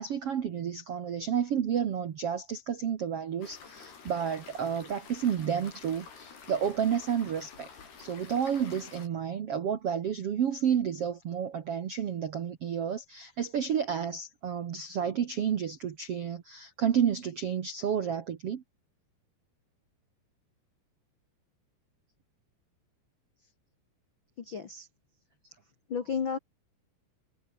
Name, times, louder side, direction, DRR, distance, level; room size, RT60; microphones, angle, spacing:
voice 1, 0.0-7.7 8.0-18.6, right 8 dB, 75° right, 1.4 m, -31 dB
sound 1, 3.4-9.1, left 5 dB, 65° left, 7.5 m, -49 dB
voice 2, 24.4-24.9 25.9-26.4, left 6 dB, 90° left, 1.0 m, -32 dB
omnidirectional pair, 4.9 m